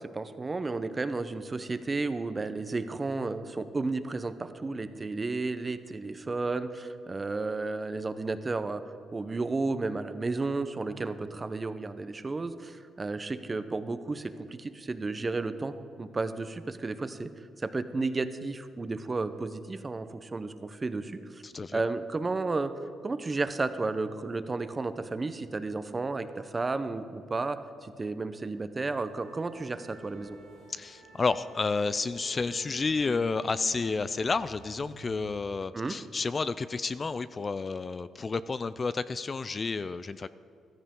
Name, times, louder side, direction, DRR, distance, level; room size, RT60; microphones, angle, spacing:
voice 1, 0.0-8.8 9.1-17.3 17.6-21.4 21.7-22.7 23.0-30.4 35.7-36.0, right 3 dB, 25° right, 11 dB, 0.7 m, -32 dB
voice 2, 21.4-21.8 30.7-40.3, left 4 dB, 35° left, 14 dB, 0.3 m, -31 dB
sound 1, 28.8-35.3, right 3 dB, 75° right, 2.9 m, -51 dB
15.5 x 13.5 x 3.8 m, 2.5 s
cardioid pair, 90°, 0 cm